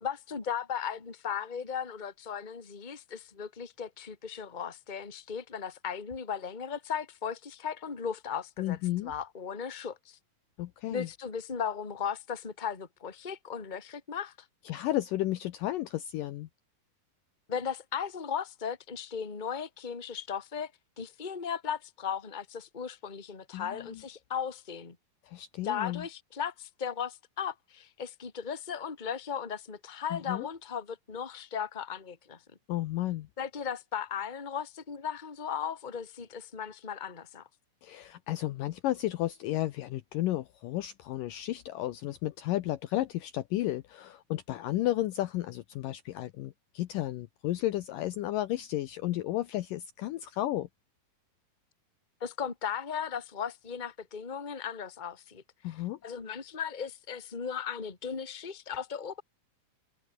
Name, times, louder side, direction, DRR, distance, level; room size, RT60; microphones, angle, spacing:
voice 1, 0.0-8.8 9.0-10.2 10.9-14.3 17.5-20.7 21.0-24.9 25.6-32.4 33.4-37.5 52.2-55.7 56.0-59.2, left 7 dB, 15° left, 1.6 m, -36 dB
voice 2, 8.6-9.1 10.6-11.1 14.7-16.5 23.5-24.0 25.3-26.0 30.1-30.5 32.7-33.3 37.8-50.7 55.6-56.0, left 15 dB, 75° left, 2.2 m, -33 dB
omnidirectional pair, 4.6 m